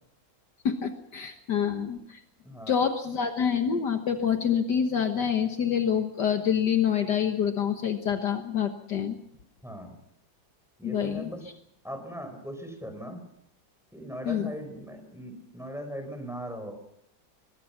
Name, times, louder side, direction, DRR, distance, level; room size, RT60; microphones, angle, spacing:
voice 1, 0.7-2.2 2.7-9.2 10.8-11.3 14.3-14.5, left 8 dB, 65° left, 6 dB, 1.9 m, -27 dB
voice 2, 2.4-2.8 9.6-10.0 10.8-11.4 11.8-13.2 13.9-16.7, equal, ahead, 6 dB, 4.7 m, -39 dB
23.0 x 21.5 x 5.8 m, 0.75 s
omnidirectional pair, 2.0 m